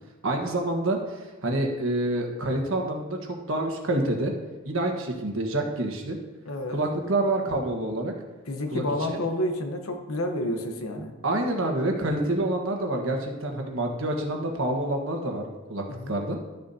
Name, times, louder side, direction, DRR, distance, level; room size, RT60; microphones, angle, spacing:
voice 1, 0.2-4.3 4.6-6.2 6.7-8.1 8.7-9.1 11.2-16.4, right 1 dB, 70° right, 2 dB, 1.3 m, -27 dB
voice 2, 6.4-6.8 8.5-11.1 15.9-16.1, left 1 dB, 80° left, 5 dB, 1.0 m, -29 dB
12.0 x 6.9 x 2.8 m, 1.2 s
head